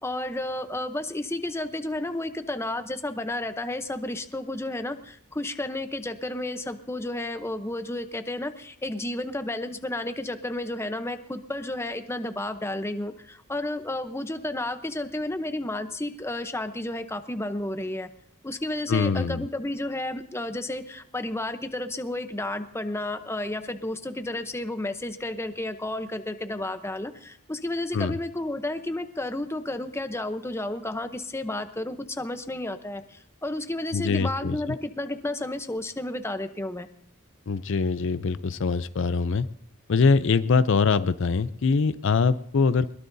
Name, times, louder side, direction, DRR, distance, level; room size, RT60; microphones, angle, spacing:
voice 1, 0.0-18.1 18.4-36.9, left 1 dB, 10° left, 9 dB, 0.8 m, -32 dB
voice 2, 18.9-19.5 27.9-28.2 33.9-34.6 37.5-39.5 39.9-42.9, left 4 dB, 60° left, 14 dB, 0.5 m, -23 dB
22.0 x 21.5 x 2.7 m, 0.69 s
head